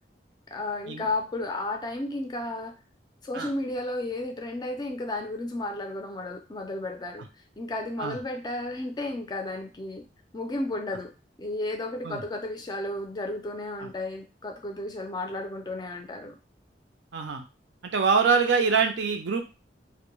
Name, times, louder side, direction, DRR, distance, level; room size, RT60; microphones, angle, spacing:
voice 1, 0.5-2.7 3.2-7.2 7.6-10.0 10.3-11.1 11.4-16.4, left 2 dB, 25° left, 4 dB, 0.4 m, -33 dB
voice 2, 17.1-17.4 17.8-19.4, right 5 dB, 85° right, 5 dB, 0.5 m, -24 dB
2.2 x 2.1 x 2.9 m, 0.29 s
head